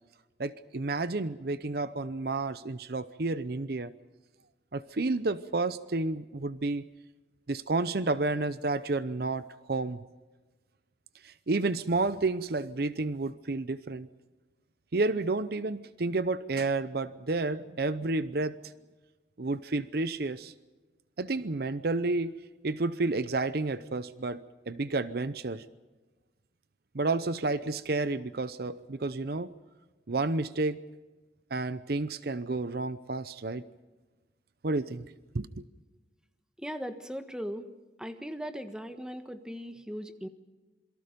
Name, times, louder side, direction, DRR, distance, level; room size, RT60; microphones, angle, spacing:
voice 1, 0.4-3.9 4.7-6.9 7.5-10.0 11.2-14.1 14.9-18.6 19.4-20.5 21.2-22.3 22.6-24.4 24.7-25.6 26.9-29.5 30.1-30.8 31.5-33.6 34.6-35.1 35.3-35.6, right 3 dB, 60° right, 15 dB, 0.7 m, -30 dB
voice 2, 36.6-37.7 38.0-40.3, equal, 5° right, 8 dB, 1.4 m, -38 dB
27.5 x 23.0 x 5.3 m, 1.2 s
head